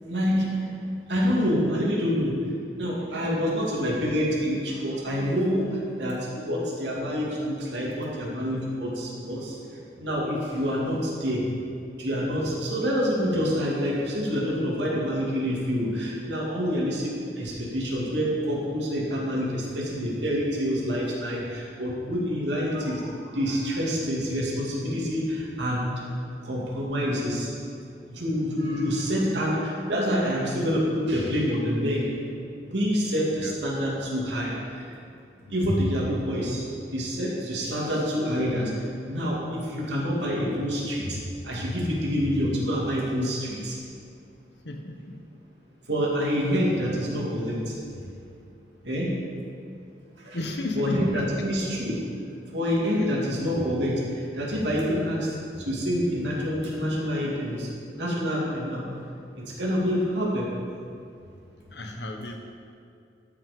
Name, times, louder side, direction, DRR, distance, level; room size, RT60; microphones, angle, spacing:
voice 1, 0.0-0.7 1.1-2.3 2.7-9.5 10.0-11.4 12.0-25.9 26.4-27.5 28.1-32.1 32.7-34.9 35.5-38.7 39.1-43.8 45.9-47.8 48.8-49.1 50.2-50.4 50.8-52.0 52.5-58.9 59.4-60.5, equal, 80° right, -4 dB, 2.5 m, -27 dB
voice 2, 35.4-35.8 44.6-45.2 50.3-51.3 53.0-53.1 54.7-55.1 61.7-62.4, left 2 dB, 70° left, 3 dB, 1.1 m, -34 dB
13.0 x 6.1 x 5.3 m, 2.5 s
head